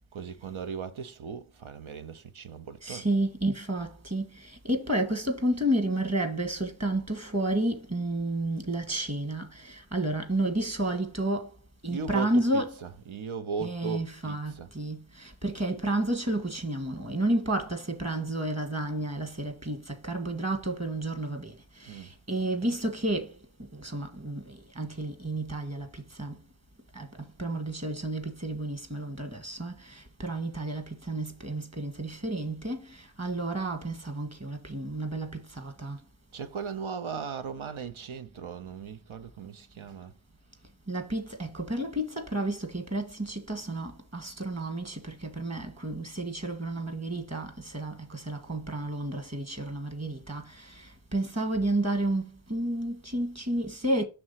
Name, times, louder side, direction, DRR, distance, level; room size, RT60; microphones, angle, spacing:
voice 1, 0.1-3.1 11.9-14.7 21.9-22.1 36.3-40.1, right 6 dB, 75° right, 0.8 m, -37 dB
voice 2, 2.8-11.6 11.8-12.8 13.6-26.4 26.9-36.0 40.9-54.0, right 1 dB, 30° right, 1.8 m, -31 dB
6.1 x 3.3 x 5.7 m
cardioid pair, 45°, 48 cm